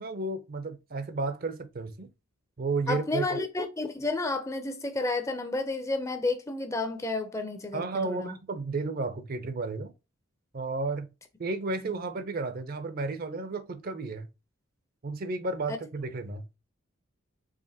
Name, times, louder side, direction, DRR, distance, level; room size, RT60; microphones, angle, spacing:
voice 1, 0.0-2.1 2.6-3.3 7.7-9.9 10.5-11.1 11.4-14.3 15.0-16.5, right 3 dB, 45° right, 0.5 m, -32 dB
voice 2, 2.9-8.4 11.7-12.0, left 2 dB, 15° left, 0.5 m, -31 dB
4.9 x 2.9 x 2.7 m
head